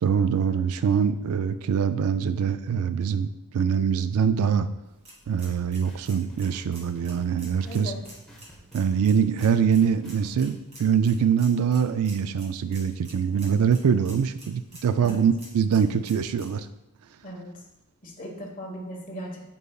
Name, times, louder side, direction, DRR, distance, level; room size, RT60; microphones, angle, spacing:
voice 1, 0.0-4.7 5.3-7.9 8.7-16.7, right 7 dB, 80° right, 12 dB, 0.4 m, -24 dB
sound 1, 4.8-16.5, right 1 dB, 30° right, 1.8 m, -50 dB
sound 2, 5.3-10.5, right 1 dB, 5° left, 1.0 m, -51 dB
voice 2, 7.6-8.0 15.0-15.2 17.2-17.5 18.0-19.5, equal, 40° left, -1 dB, 1.3 m, -38 dB
8.1 x 5.4 x 2.3 m, 0.90 s
head